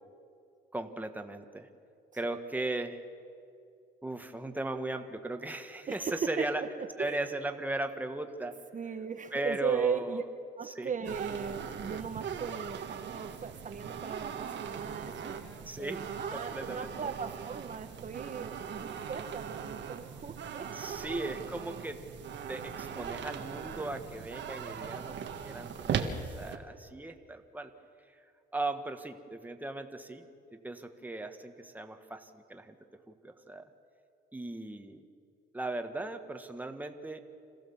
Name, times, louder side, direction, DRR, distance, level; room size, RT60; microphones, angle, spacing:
voice 1, 0.7-1.7 2.1-3.0 4.0-6.6 7.0-8.5 9.3-10.2 10.6-10.9 15.6-16.9 20.7-22.0 22.5-27.7 28.1-28.2 28.5-30.3 30.5-32.8 33.1-33.6 34.3-35.0 35.5-37.2, right 2 dB, 10° right, 6 dB, 1.5 m, -37 dB
voice 2, 5.9-6.5 7.0-7.2 8.7-10.2 10.6-15.4 15.8-21.0, right 6 dB, 40° right, 7 dB, 1.1 m, -37 dB
sound 1, 11.0-26.6, right 7 dB, 65° right, 1.6 m, -39 dB
26.5 x 15.5 x 7.2 m, 2.4 s
cardioid pair, 90°, 20 cm